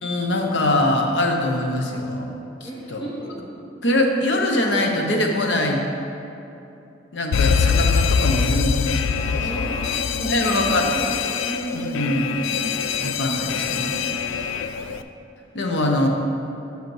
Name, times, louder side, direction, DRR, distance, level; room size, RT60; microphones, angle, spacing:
voice 1, 0.0-2.3 2.6-3.0 3.8-5.8 7.1-9.5 10.1-11.0 11.7-12.3 13.0-13.9 15.5-16.1, left 1 dB, 65° left, 2 dB, 0.8 m, -23 dB
voice 2, 2.6-3.3 9.1-10.0 10.3-11.1 11.4-12.6 13.6-14.3, right 1 dB, 25° left, -7 dB, 0.8 m, -34 dB
Alarm, 7.3-15.0, left 6 dB, 85° left, 0.3 m, -23 dB
6.5 x 5.2 x 4.7 m, 2.9 s
head